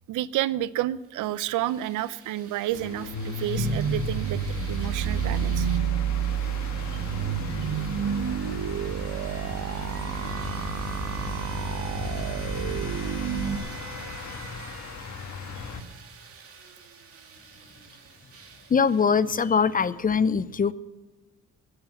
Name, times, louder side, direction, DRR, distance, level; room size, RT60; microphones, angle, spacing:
voice 1, 0.1-4.4 4.7-5.7 7.6-7.7 13.6-13.8, right 14 dB, 85° right, 18 dB, 0.6 m, -30 dB
sound 1, 1.0-19.7, right 5 dB, 50° right, 2.5 m, -46 dB
sound 2, 2.7-15.8, left 2 dB, 65° left, 1.7 m, -35 dB
sound 3, 3.6-13.6, right 9 dB, 70° right, 1.1 m, -30 dB
voice 2, 18.7-20.7, left 6 dB, 30° left, 17 dB, 0.5 m, -22 dB
14.5 x 8.1 x 9.0 m, 1.2 s
cardioid pair, 90°, 30 cm